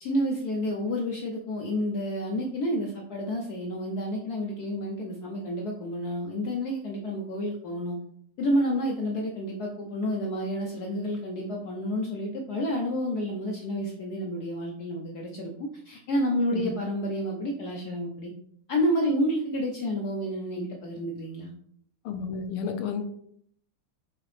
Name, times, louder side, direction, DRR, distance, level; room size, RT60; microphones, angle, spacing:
voice 1, 0.0-8.0 8.4-18.3 18.7-21.5, equal, 70° left, 0 dB, 0.9 m, -29 dB
voice 2, 22.0-23.0, left 6 dB, 85° left, 6 dB, 1.5 m, -31 dB
5.8 x 2.9 x 3.2 m, 0.66 s
omnidirectional pair, 2.3 m